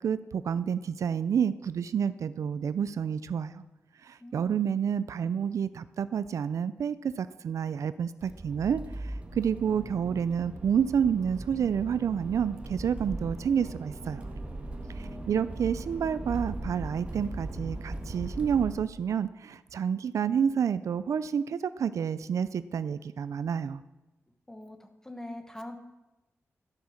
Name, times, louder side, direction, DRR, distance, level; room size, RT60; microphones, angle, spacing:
voice 1, 0.0-3.6 4.0-14.2 14.9-23.8, right 7 dB, 80° right, 15 dB, 0.4 m, -29 dB
voice 2, 4.2-4.8 14.9-15.5 24.5-25.8, left 1 dB, 10° left, 7 dB, 1.0 m, -44 dB
Accelerating revving vroom, 8.2-18.7, right 1 dB, 25° right, 1.5 m, -39 dB
12.5 x 8.1 x 6.4 m, 1.0 s
wide cardioid pair, 175°, 5 cm